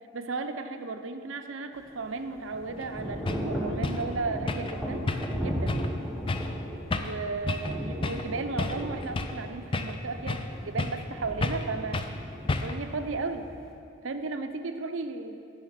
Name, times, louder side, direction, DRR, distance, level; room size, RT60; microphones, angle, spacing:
voice 1, 0.1-5.1 5.4-5.7 7.0-12.1 12.6-13.5 14.0-15.4, right 3 dB, 70° right, 8 dB, 0.6 m, -34 dB
Thunder / Rain, 1.8-13.7, equal, 5° left, 1.1 m, -36 dB
sound 1, 2.8-2.9 3.3-3.5 3.8-4.1 4.5-4.8 5.1-5.4 5.7-5.9 6.3-6.5 6.9-7.2 7.5-7.7 8.0-8.3 8.6-9.4 9.7-10.5 10.8-11.1 11.4-11.7 11.9-12.1 12.5-12.9, left 3 dB, 25° left, 0.4 m, -31 dB
10.0 x 5.7 x 7.4 m, 2.5 s
head